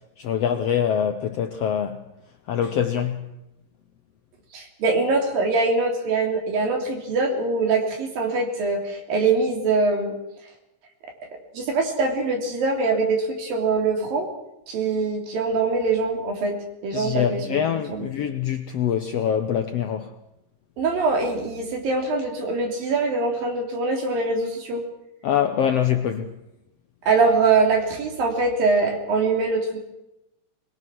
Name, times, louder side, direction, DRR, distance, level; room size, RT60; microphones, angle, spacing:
voice 1, 0.2-2.0 2.5-3.2 16.9-20.1 25.2-26.3, left 9 dB, 75° left, 1.5 m, -24 dB
voice 2, 4.5-10.2 11.5-14.3 14.7-16.6 16.8-18.1 20.8-24.8 27.0-29.8, right 3 dB, 85° right, 4.9 m, -23 dB
21.5 x 21.5 x 6.2 m
omnidirectional pair, 3.9 m